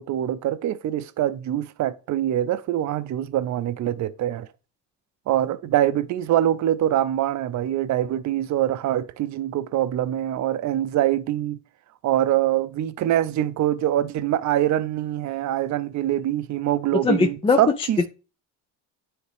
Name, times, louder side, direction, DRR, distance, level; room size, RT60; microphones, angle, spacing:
voice 1, 0.0-4.5 5.3-11.6 12.0-18.1, right 12 dB, 45° right, 0.5 m, -24 dB
voice 2, 16.9-17.9, left 4 dB, 15° left, 0.3 m, -21 dB
9.7 x 3.6 x 3.4 m
supercardioid pair, 90°, 42 cm